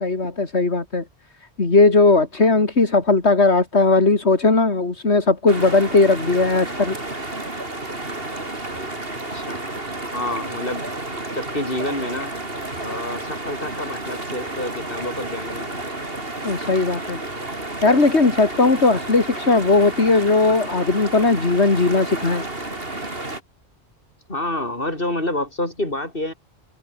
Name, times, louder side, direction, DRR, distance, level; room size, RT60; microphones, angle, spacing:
voice 1, 0.0-1.0 1.6-6.9 16.4-17.2 17.8-22.4, left 3 dB, 90° left, 3.3 m, -18 dB
sound 1, 5.5-23.4, right 2 dB, 60° right, 4.7 m, -31 dB
voice 2, 9.3-9.7 10.1-10.9 11.3-12.3 12.8-15.9 24.3-26.3, left 1 dB, 55° left, 6.8 m, -28 dB
omnidirectional pair, 1.1 m